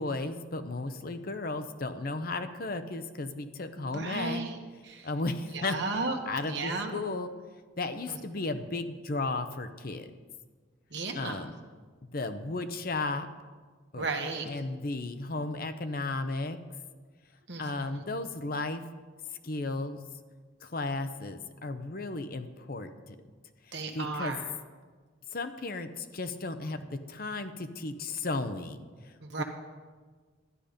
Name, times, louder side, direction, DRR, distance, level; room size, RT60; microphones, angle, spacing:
voice 1, 0.0-4.4 5.0-5.8 6.3-7.3 7.8-10.1 11.1-11.5 12.1-13.3 13.9-14.1 14.5-16.6 17.6-18.8 19.4-20.0 20.6-23.2 23.7-24.4 25.3-29.4, left 2 dB, 50° left, 9 dB, 0.7 m, -34 dB
voice 2, 3.8-4.6 4.8-5.1 5.5-6.2 6.4-6.9 8.1-8.2 8.5-8.6 10.9-11.5 13.9-14.5 17.5-18.0 23.7-24.4 29.2-29.4, right 3 dB, 60° right, 3 dB, 1.5 m, -34 dB
12.5 x 10.0 x 5.1 m, 1.5 s
head